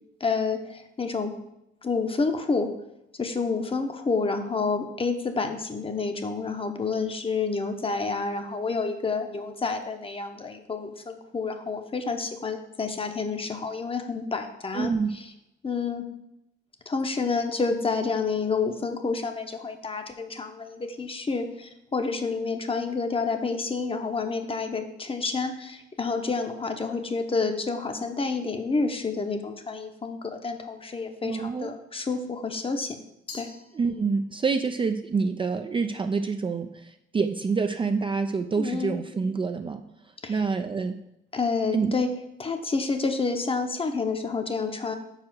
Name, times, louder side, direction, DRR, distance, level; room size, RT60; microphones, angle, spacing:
voice 1, 0.2-1.3 1.8-2.7 3.2-15.2 15.6-16.1 16.9-33.0 33.3-33.5 38.6-39.0 40.2-40.4 41.3-42.1 42.4-45.0, left 4 dB, 30° left, 6 dB, 0.8 m, -29 dB
voice 2, 14.7-15.1 31.2-31.7 33.7-39.8 40.3-41.0 41.7-42.0, right 4 dB, 25° right, 7 dB, 0.4 m, -27 dB
Glass, 33.3-34.5, left 4 dB, 70° left, 2.4 m, -46 dB
4.9 x 4.7 x 6.0 m, 0.86 s
cardioid pair, 90°, 20 cm